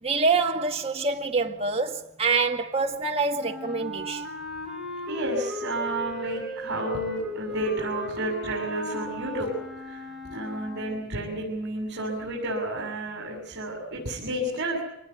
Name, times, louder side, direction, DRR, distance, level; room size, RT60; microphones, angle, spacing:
voice 1, 0.0-4.3, right 4 dB, 25° right, 2.3 m, -26 dB
Wind instrument woodwind instrument, 3.3-11.0, left 1 dB, ahead, 5.4 m, -36 dB
voice 2, 5.1-9.6 9.9-10.0 10.3-14.8, right 1 dB, 50° right, 7.3 m, -31 dB
26.5 x 20.0 x 8.3 m
head